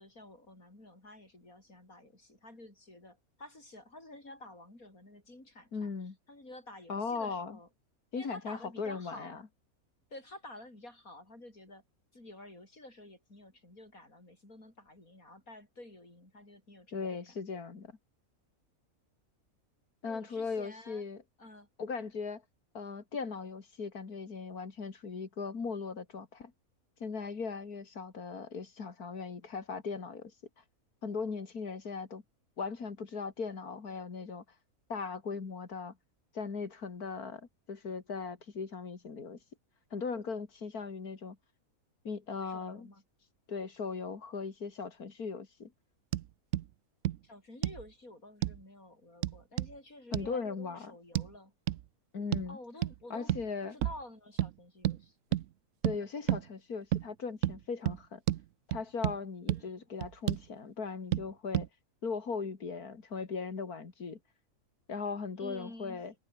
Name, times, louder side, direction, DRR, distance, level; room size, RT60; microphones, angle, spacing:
voice 1, 0.0-5.9 6.3-7.7 8.1-9.4 10.1-11.8 12.1-17.2 20.0-21.0 21.4-21.7 42.4-43.0 47.2-51.5 52.5-53.3 53.7-55.2 59.5-59.6 65.4-66.0, left 1 dB, 70° left, 8.1 m, -51 dB
voice 2, 5.7-6.2 6.9-7.6 8.1-9.4 16.9-17.9 20.0-21.2 21.8-22.4 22.7-26.5 27.0-30.3 31.0-32.2 32.6-34.4 34.9-36.0 36.3-39.4 39.9-41.4 42.0-42.9 43.5-45.7 50.1-50.9 52.1-52.6 53.1-53.8 55.8-58.2 58.7-61.7 62.0-64.2 64.9-66.1, left 5 dB, 90° left, 3.0 m, -38 dB
sound 1, 46.1-46.3 46.5-46.7 47.1-47.2 47.6-47.8 48.4-48.6 49.2-49.7 50.1-50.3 51.2-51.3 51.7-51.8 52.3-52.5 52.8-53.0 53.3-53.5 53.8-54.0 54.4-54.5 54.8-55.0 55.3-55.5 55.8-56.0 56.3-56.4 56.9-57.1 57.4-57.6 57.9-58.0 58.3-58.4 58.7-59.2 59.5-59.6 60.0-60.5 61.1-61.3 61.5-61.7, right 13 dB, 65° right, 0.9 m, -30 dB
omnidirectional pair, 1.5 m